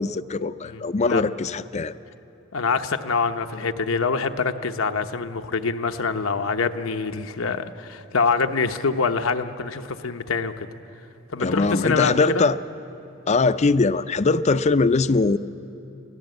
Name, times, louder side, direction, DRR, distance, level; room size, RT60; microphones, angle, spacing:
voice 1, 0.0-1.9 11.4-12.5 13.3-15.4, left 3 dB, 35° left, 13 dB, 0.5 m, -21 dB
voice 2, 0.6-1.2 2.5-10.7 11.3-12.5, left 4 dB, 90° left, 7 dB, 0.9 m, -25 dB
26.5 x 16.5 x 7.9 m, 2.8 s
head